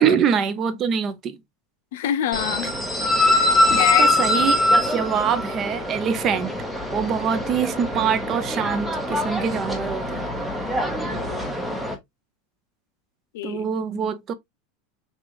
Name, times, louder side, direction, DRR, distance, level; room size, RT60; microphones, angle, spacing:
voice 1, 0.0-1.4 3.7-6.5 6.9-10.3 13.4-14.3, right 7 dB, 30° right, 0.7 m, -24 dB
voice 2, 1.9-2.7 3.2-4.1 11.0-11.5 13.3-13.6, left 11 dB, 80° left, 0.5 m, -27 dB
sound 1, 2.3-11.9, left 1 dB, ahead, 1.0 m, -23 dB
6.1 x 2.4 x 3.1 m
supercardioid pair, 155°, 0 cm